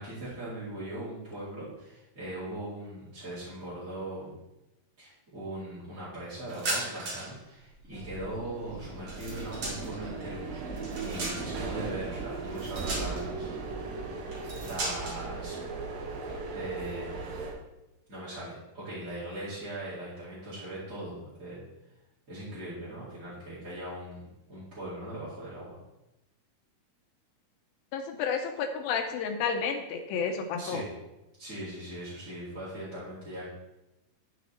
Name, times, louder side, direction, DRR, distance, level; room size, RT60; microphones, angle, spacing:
voice 1, 0.0-4.3 5.0-10.7 11.0-13.5 14.6-15.6 16.5-17.2 18.1-21.6 22.3-25.8 30.6-30.9 31.4-33.5, right 1 dB, 25° right, -11 dB, 2.3 m, -40 dB
sound 1, 6.5-7.4 7.7-10.1 10.5-11.7 12.5-13.4 14.3-15.2, right 2 dB, 50° right, 3.0 m, -37 dB
sound 2, 7.9-17.5, right 4 dB, 80° right, 2.9 m, -37 dB
voice 2, 27.9-30.8, left 6 dB, 85° left, 5 dB, 2.5 m, -31 dB
12.5 x 4.2 x 4.2 m, 0.96 s
omnidirectional pair, 4.3 m